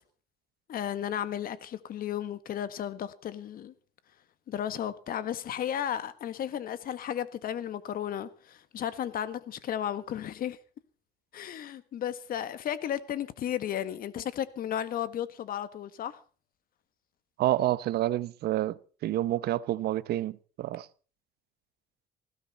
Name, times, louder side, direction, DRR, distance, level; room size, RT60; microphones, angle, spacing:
voice 1, 0.7-3.7 4.5-10.6 11.3-16.2, left 10 dB, 60° left, 1.5 m, -34 dB
voice 2, 17.4-20.9, right 14 dB, 70° right, 0.8 m, -29 dB
19.5 x 16.0 x 4.2 m
cardioid pair, 110°, 17 cm